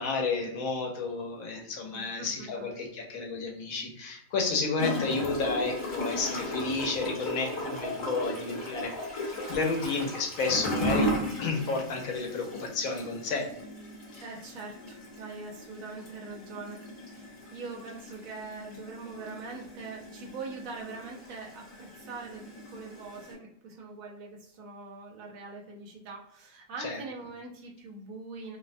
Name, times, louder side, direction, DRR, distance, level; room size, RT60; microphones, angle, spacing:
voice 1, 0.0-13.5 14.1-14.2 26.8-27.0, left 4 dB, 70° left, 1 dB, 1.0 m, -31 dB
voice 2, 1.9-2.7 14.2-28.6, right 3 dB, 70° right, -1 dB, 1.0 m, -43 dB
Gurgling / Toilet flush, 4.8-23.3, equal, 50° left, 1.4 m, -36 dB
2.7 x 2.1 x 2.4 m, 0.76 s
omnidirectional pair, 1.6 m